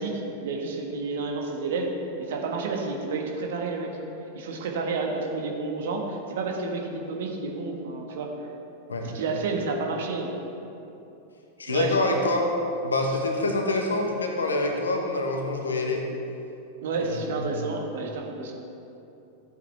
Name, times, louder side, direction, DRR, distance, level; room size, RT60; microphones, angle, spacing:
voice 1, 0.0-3.9 4.3-8.3 9.0-10.3 11.7-12.0 16.8-18.5, right 3 dB, 55° right, 1 dB, 1.4 m, -30 dB
voice 2, 11.6-12.5 12.8-16.0 17.0-17.6, left 2 dB, 70° left, 2 dB, 1.3 m, -26 dB
14.5 x 8.0 x 3.4 m, 2.8 s
figure-of-eight pair, 90°, 0 cm